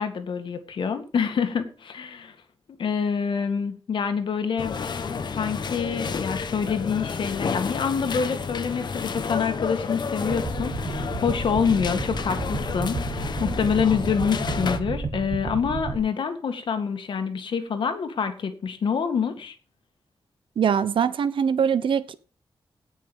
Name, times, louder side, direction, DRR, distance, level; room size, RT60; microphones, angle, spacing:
voice 1, 0.0-2.4 2.8-4.8 5.3-19.5, left 6 dB, 75° left, 1.9 m, -26 dB
sound 1, 4.6-14.8, left 5 dB, 60° left, 1.3 m, -31 dB
sound 2, 10.2-16.0, right 4 dB, 60° right, 1.6 m, -32 dB
voice 2, 20.6-22.2, right 7 dB, 85° right, 1.0 m, -22 dB
17.5 x 6.2 x 5.4 m
wide cardioid pair, 135°, 8 cm